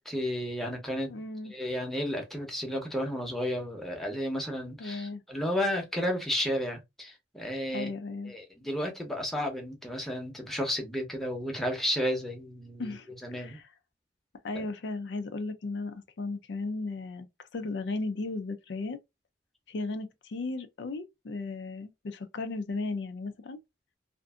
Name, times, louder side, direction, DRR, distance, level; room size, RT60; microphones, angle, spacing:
voice 1, 0.0-1.1 1.5-7.9 8.3-12.9 13.2-13.6 14.5-14.7, equal, ahead, 0.7 m, -32 dB
voice 2, 1.1-1.5 4.8-5.2 7.7-8.3 12.8-13.1 13.3-13.7 14.4-19.0 19.7-23.6, left 3 dB, 85° left, 0.4 m, -35 dB
2.5 x 2.5 x 2.3 m
head